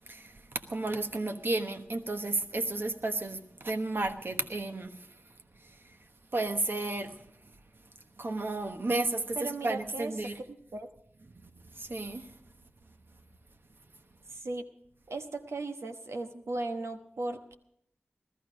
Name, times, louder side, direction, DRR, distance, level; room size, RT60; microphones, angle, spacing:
voice 1, 0.1-0.4 0.7-4.9 6.3-7.2 8.2-10.4 11.7-12.2, right 2 dB, 55° right, 7 dB, 1.2 m, -32 dB
voice 2, 9.4-10.1 10.5-10.9 14.3-14.6 15.1-17.5, right 2 dB, 85° right, 6 dB, 1.1 m, -37 dB
14.5 x 14.0 x 5.0 m, 0.74 s
wide cardioid pair, 50°, 4 cm